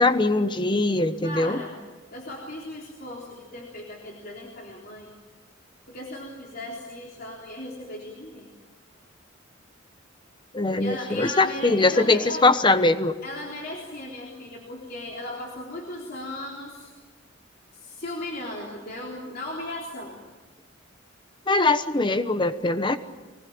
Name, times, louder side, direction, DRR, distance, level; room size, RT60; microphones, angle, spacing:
voice 1, 0.0-1.6 10.5-13.2 21.5-23.0, left 2 dB, 25° left, 11 dB, 1.1 m, -21 dB
voice 2, 1.2-1.8 2.1-5.1 5.9-8.5 10.8-12.5 13.2-16.9 17.7-20.2, left 1 dB, 50° left, -3 dB, 3.7 m, -37 dB
25.0 x 19.5 x 8.8 m, 1.3 s
head